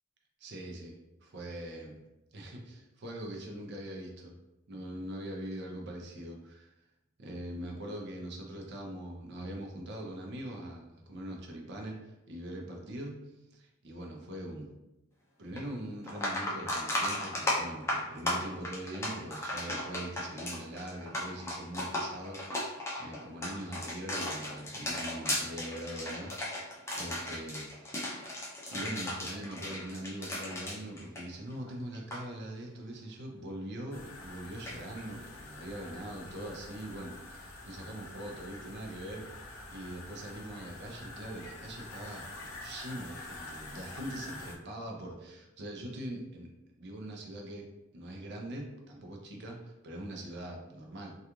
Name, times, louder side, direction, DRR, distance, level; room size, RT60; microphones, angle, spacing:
voice 1, 0.4-1.0 1.2-2.0 2.3-4.3 4.7-6.7 7.2-13.2 13.5-14.7 15.4-27.7 28.1-46.5 46.8-47.7 47.9-51.1, right 1 dB, 55° right, 1 dB, 0.5 m, -42 dB
sound 1, 15.6-15.7 16.0-31.7 31.9-32.2 34.7-34.8, left 1 dB, 15° left, 0.4 m, -35 dB
sound 2, 33.9-44.6, left 2 dB, 75° left, 0.4 m, -47 dB
2.3 x 2.3 x 2.9 m, 0.98 s
head